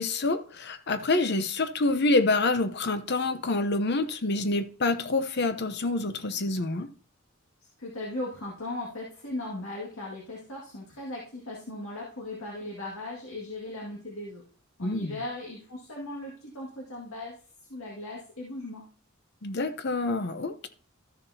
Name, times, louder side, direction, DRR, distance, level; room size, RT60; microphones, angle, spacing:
voice 1, 0.0-6.9 14.8-15.2 19.4-20.7, left 2 dB, 50° left, 0.8 m, -27 dB
voice 2, 7.8-14.4 14.8-18.8, left 1 dB, 75° left, 2.0 m, -38 dB
13.0 x 6.9 x 2.8 m
head